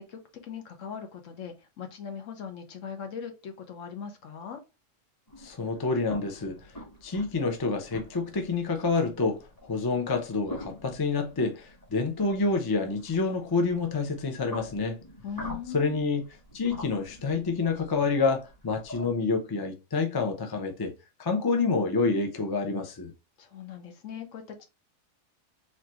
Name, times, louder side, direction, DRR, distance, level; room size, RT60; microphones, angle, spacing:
voice 1, 0.0-4.6 15.2-16.0 23.4-24.6, left 7 dB, 65° left, 1.2 m, -40 dB
sound 1, 5.3-19.1, equal, 15° left, 1.5 m, -46 dB
voice 2, 5.4-6.6 7.0-15.0 15.7-16.2 16.5-20.9 21.2-23.1, left 4 dB, 30° left, 0.4 m, -28 dB
4.3 x 2.8 x 3.0 m
omnidirectional pair, 1.5 m